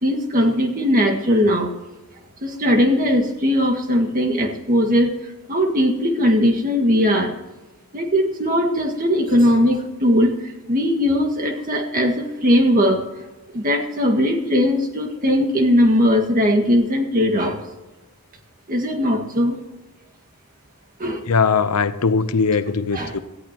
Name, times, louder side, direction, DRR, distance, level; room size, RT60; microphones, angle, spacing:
voice 1, 0.0-1.7 2.4-5.2 5.5-7.3 7.9-13.1 13.5-17.7 18.7-19.6 21.0-21.3 22.9-23.1, equal, 40° right, 1.8 m, -19 dB
voice 2, 21.3-23.2, left 5 dB, 85° left, 0.7 m, -20 dB
18.5 x 13.5 x 3.0 m
head